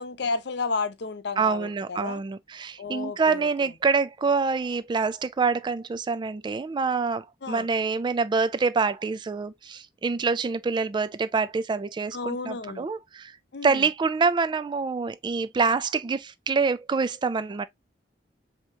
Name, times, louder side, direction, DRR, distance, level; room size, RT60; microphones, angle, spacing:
voice 1, 0.0-2.2 2.8-3.5 7.4-7.7 12.1-12.9 13.5-13.9, left 4 dB, 65° left, 0.7 m, -32 dB
voice 2, 1.4-13.3 13.6-17.7, right 4 dB, 25° right, 0.3 m, -26 dB
5.6 x 2.9 x 2.7 m
head